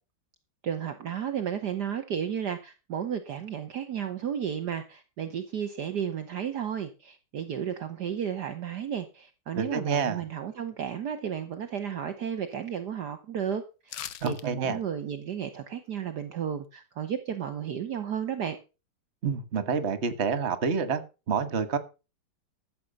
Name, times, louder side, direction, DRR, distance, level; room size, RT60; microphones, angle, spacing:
voice 1, 0.6-18.6, right 8 dB, 60° right, 10 dB, 1.4 m, -33 dB
voice 2, 9.5-10.2 14.2-14.8 19.2-21.0 21.3-21.8, right 6 dB, 35° right, 12 dB, 1.4 m, -28 dB
sound 1, 13.9-14.5 14.8-14.9, left 11 dB, 70° left, 1.6 m, -39 dB
14.0 x 7.6 x 5.3 m, 0.31 s
omnidirectional pair, 2.3 m